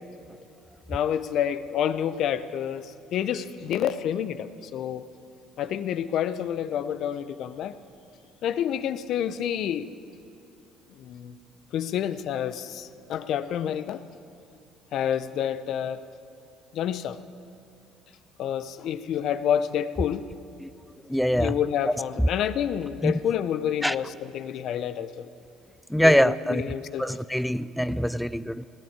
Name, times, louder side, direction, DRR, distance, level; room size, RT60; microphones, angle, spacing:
voice 1, 0.9-5.0 5.6-7.7 8.4-9.9 11.0-11.3 11.7-14.0 14.9-16.0 16.7-17.2 18.4-20.3 21.4-25.3 26.0-27.0, left 9 dB, 65° left, 0.6 m, -28 dB
voice 2, 21.0-21.6 22.2-22.3 23.0-23.2 23.8-24.0 25.9-26.7 27.0-28.7, equal, ahead, 0.4 m, -23 dB
18.0 x 8.7 x 8.7 m
supercardioid pair, 80°, 0 cm